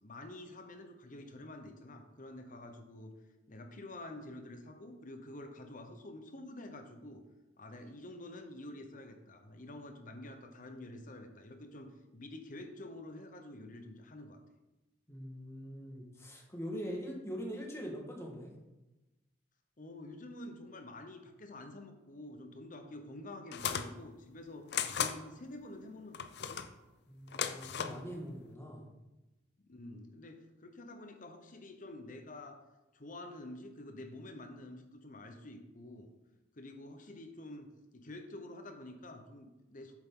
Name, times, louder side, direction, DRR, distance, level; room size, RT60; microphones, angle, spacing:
voice 1, 0.0-3.1 3.5-7.2 7.6-14.4 19.8-26.5 29.6-32.6 32.9-36.1 36.6-39.9, left 1 dB, 45° left, 6 dB, 1.0 m, -48 dB
voice 2, 15.1-18.5 27.1-28.9, equal, 15° left, -1 dB, 1.6 m, -43 dB
sound 1, 23.5-23.9 24.7-25.2 26.1-26.7 27.3-28.0, left 8 dB, 60° left, 0.5 m, -35 dB
7.8 x 7.8 x 3.9 m, 1.0 s
head